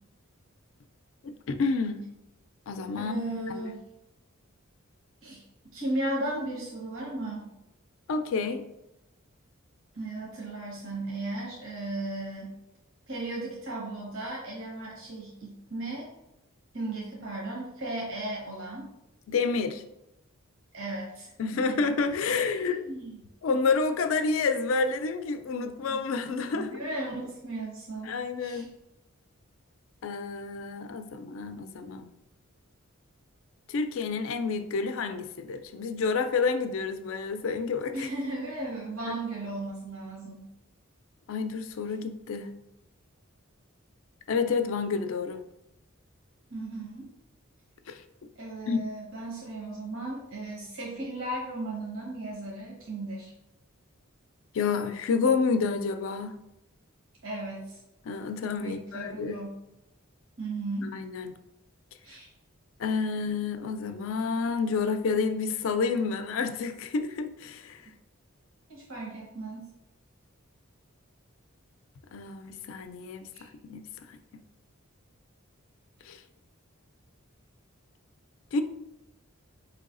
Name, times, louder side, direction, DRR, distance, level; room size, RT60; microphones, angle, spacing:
voice 1, 1.2-2.0 2.7-3.7 8.1-8.6 19.3-19.8 21.4-22.9 23.4-26.7 28.0-28.7 30.0-32.1 33.7-38.1 41.3-42.5 44.3-45.4 47.9-48.0 48.7-48.8 54.5-56.3 58.1-59.4 60.8-61.3 62.8-67.8 72.1-73.3 73.6-74.2 76.1-76.2 78.5-78.6, left 4 dB, 70° left, 0.4 m, -29 dB
voice 2, 3.0-3.8 5.2-5.4 5.7-7.5 9.9-12.5 13.1-16.1 16.7-18.9 20.7-21.8 22.3-23.3 25.9-26.0 26.5-28.7 37.9-40.5 46.5-47.1 48.4-53.3 57.2-57.8 58.6-59.5 60.4-60.9 62.0-62.3 68.7-69.7 73.3-73.5, right 2 dB, 75° right, 1.0 m, -36 dB
4.7 x 3.2 x 2.5 m
head